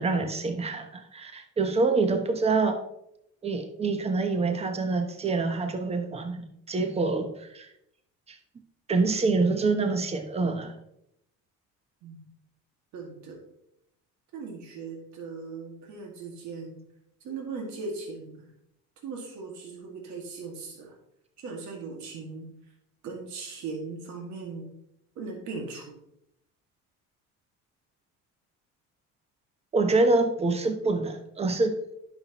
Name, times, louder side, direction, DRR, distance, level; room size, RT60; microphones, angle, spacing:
voice 1, 0.0-2.8 3.4-7.7 8.3-8.4 8.9-10.7 29.7-31.8, right 3 dB, 20° right, 7 dB, 0.9 m, -26 dB
voice 2, 12.9-13.4 14.3-16.8 17.2-18.4 19.0-20.9 21.4-22.5 23.0-24.7 25.2-25.9, right 4 dB, 70° right, 0 dB, 2.0 m, -38 dB
11.0 x 5.9 x 3.0 m, 0.78 s
cardioid pair, 125°, 29 cm